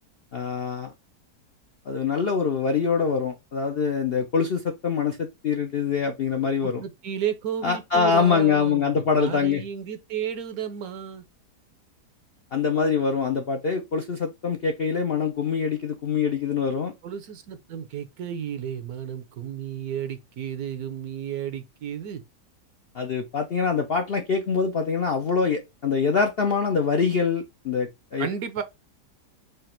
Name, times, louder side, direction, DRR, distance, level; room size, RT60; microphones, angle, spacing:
voice 1, 0.3-0.9 1.9-6.8 7.6-9.6 12.5-16.9 22.9-28.3, left 5 dB, 60° left, 0.6 m, -24 dB
voice 2, 6.6-11.2 17.0-22.2 28.2-28.6, right 8 dB, 65° right, 1.1 m, -33 dB
5.0 x 2.5 x 4.3 m
omnidirectional pair, 1.8 m